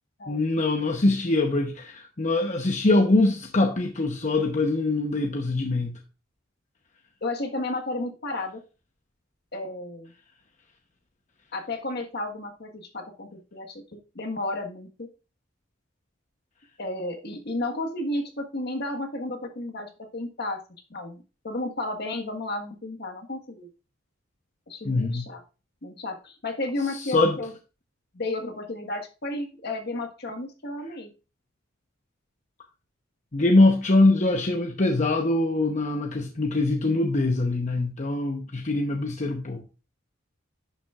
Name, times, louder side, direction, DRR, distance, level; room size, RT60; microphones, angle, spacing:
voice 1, 0.3-6.0 24.8-25.2 26.9-27.4 33.3-39.6, left 2 dB, 35° left, 0.8 m, -23 dB
voice 2, 7.2-8.6 9.5-10.1 11.5-15.1 16.8-20.6 20.9-23.7 24.7-25.4 25.8-27.5 28.1-31.1, left 2 dB, 55° left, 1.4 m, -32 dB
10.5 x 7.0 x 2.4 m
head